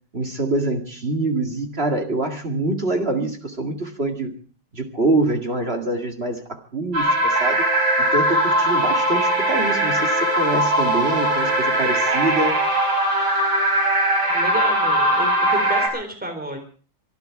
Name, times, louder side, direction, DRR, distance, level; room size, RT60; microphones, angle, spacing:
voice 1, 0.1-4.3 4.7-7.7 8.1-12.6, right 2 dB, 30° right, 4 dB, 2.1 m, -25 dB
sound 1, 6.9-15.9, right 1 dB, 75° right, 5.4 m, -20 dB
voice 2, 14.3-16.6, right 1 dB, 5° right, 5 dB, 3.7 m, -31 dB
25.0 x 11.5 x 4.7 m, 0.41 s
omnidirectional pair, 2.3 m